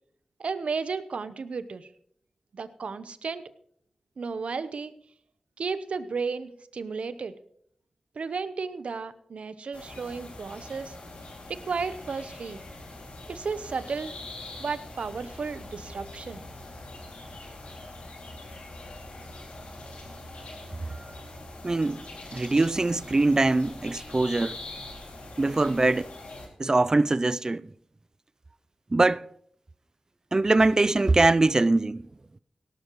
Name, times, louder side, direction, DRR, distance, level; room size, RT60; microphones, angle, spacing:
voice 1, 0.4-1.9 2.5-3.5 4.2-4.9 5.6-7.3 8.1-11.0 11.5-12.6 13.3-14.1 14.6-16.4, right 5 dB, 80° right, 0.8 m, -33 dB
sound 1, 9.7-26.5, left 2 dB, 90° left, 2.5 m, -43 dB
voice 2, 21.6-22.0 22.3-24.6 25.4-26.1 26.6-27.6 28.9-29.3 30.3-32.0, right 2 dB, 30° right, 0.4 m, -22 dB
18.0 x 11.5 x 3.1 m
wide cardioid pair, 75°, 2 cm